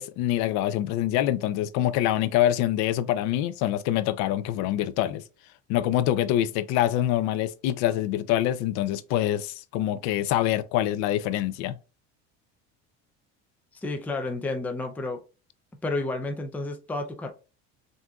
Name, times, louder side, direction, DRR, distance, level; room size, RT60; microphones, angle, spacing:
voice 1, 0.0-5.2 5.7-11.8, left 12 dB, 70° left, 0.5 m, -25 dB
voice 2, 13.7-15.2 15.8-17.3, left 2 dB, 5° left, 0.4 m, -31 dB
6.1 x 2.6 x 2.3 m
cardioid pair, 150°, 30 cm